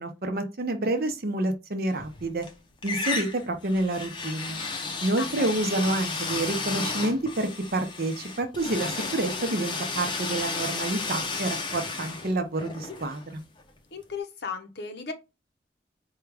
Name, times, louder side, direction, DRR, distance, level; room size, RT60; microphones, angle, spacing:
voice 1, 0.0-2.5 2.8-4.6 5.0-13.4, right 2 dB, 55° right, 0.7 m, -28 dB
sound 1, 1.9-2.5 2.8-13.7, left 4 dB, 25° left, 0.6 m, -33 dB
voice 2, 5.2-5.9 13.9-15.1, left 5 dB, 65° left, 0.8 m, -36 dB
4.7 x 2.3 x 3.3 m
head